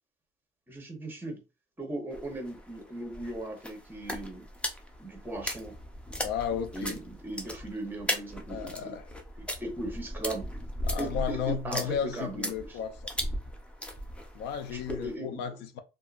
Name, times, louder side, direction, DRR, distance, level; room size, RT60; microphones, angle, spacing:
voice 1, 0.7-1.4 1.8-4.5 5.0-5.8 6.7-8.9 9.4-10.5 11.0-12.8 14.7-15.6, right 1 dB, 10° right, 1.0 m, -38 dB
sound 1, 2.1-15.1, left 1 dB, 5° left, 0.5 m, -38 dB
voice 2, 6.2-7.0 8.5-9.1 10.8-13.0 14.3-15.8, left 8 dB, 85° left, 0.5 m, -34 dB
2.7 x 2.6 x 2.4 m
cardioid pair, 110°, 17 cm